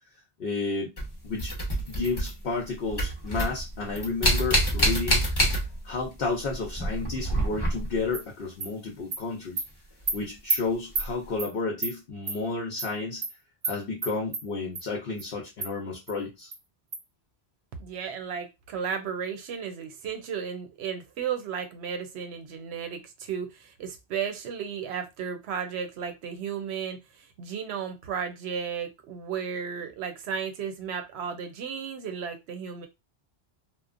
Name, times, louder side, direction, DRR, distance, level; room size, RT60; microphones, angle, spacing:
voice 1, 0.4-0.9 1.2-1.5 1.9-5.2 5.8-9.6 10.1-13.2 13.6-16.5, left 3 dB, 65° left, 0 dB, 0.8 m, -31 dB
sound 1, 1.0-2.6 2.9-6.1 6.3-8.1 10.0-10.1 10.9-11.1, equal, 25° left, 0.7 m, -27 dB
Animal, 8.1-8.2 8.6-8.7 9.1-9.2 9.6-9.7 10.1-10.2 10.5-10.6 11.0-11.1 11.4-11.5 11.8-11.9 12.3-12.4 12.8-12.9 13.2-13.3 13.6-13.8 14.0-14.4 14.8-14.9 15.2-15.3 15.6-15.7 16.1-16.2 16.5-16.6 16.9-17.0, right 4 dB, 45° right, 0.6 m, -29 dB
voice 2, 17.8-32.9, right 7 dB, 90° right, 7 dB, 0.9 m, -34 dB
2.9 x 2.1 x 2.4 m, 0.23 s
omnidirectional pair, 1.1 m